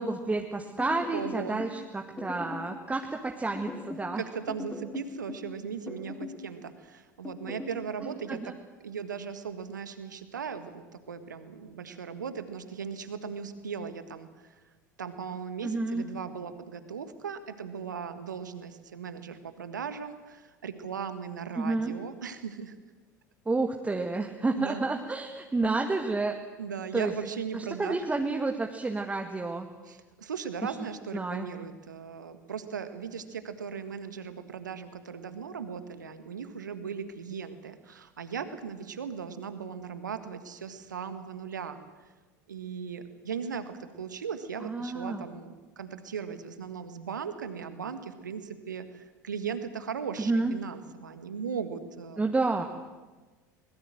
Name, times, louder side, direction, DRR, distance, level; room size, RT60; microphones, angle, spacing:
voice 1, 0.0-4.2 8.4-8.5 15.6-16.1 21.6-21.9 23.5-26.4 26.9-27.1 27.5-29.7 31.1-31.5 44.6-45.2 50.2-50.5 52.2-52.6, right 3 dB, 15° right, 3 dB, 1.8 m, -30 dB
sound 1, 0.8-1.8 2.2-2.7 3.6-4.1 4.5-5.5 5.9-6.4 7.2-7.8, left 4 dB, 15° left, 4.2 m, -40 dB
voice 2, 1.1-1.6 4.1-8.5 8.8-14.5 15.0-22.7 24.6-24.8 26.6-28.0 29.8-41.8 42.5-52.3, right 6 dB, 75° right, 10 dB, 1.7 m, -38 dB
23.0 x 21.0 x 7.7 m, 1.3 s
figure-of-eight pair, 75°, 10 cm